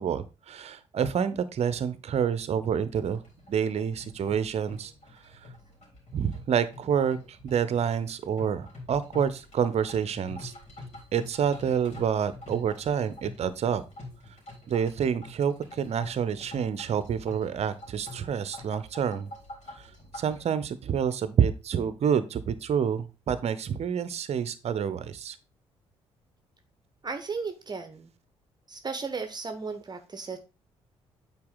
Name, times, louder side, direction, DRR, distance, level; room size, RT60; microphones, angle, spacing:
voice 1, 0.0-3.2 3.5-4.9 6.1-10.5 11.1-13.8 14.7-19.3 19.8-25.4, right 7 dB, 45° right, 14 dB, 0.8 m, -28 dB
sound 1, 3.0-20.4, left 2 dB, 45° left, 3.7 m, -47 dB
voice 2, 27.0-28.1 28.7-30.4, right 4 dB, 30° right, 7 dB, 1.1 m, -35 dB
8.6 x 4.3 x 4.0 m, 0.29 s
figure-of-eight pair, 45°, 15 cm